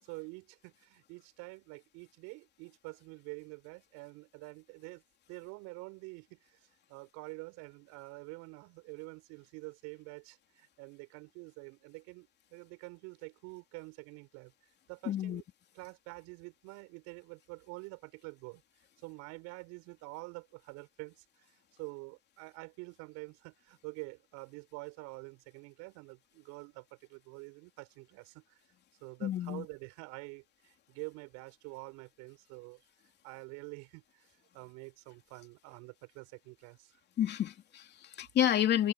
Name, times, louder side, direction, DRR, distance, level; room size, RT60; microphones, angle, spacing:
voice 1, 0.0-5.0 5.3-6.6 6.9-14.5 14.9-15.4 15.7-18.6 19.0-28.6 29.0-32.8 33.2-36.9, right 27 dB, 60° right, 7.2 m, -47 dB
voice 2, 15.1-15.4 29.2-29.6 37.2-38.9, left 10 dB, 35° left, 3.2 m, -30 dB
supercardioid pair, 120°, 30 cm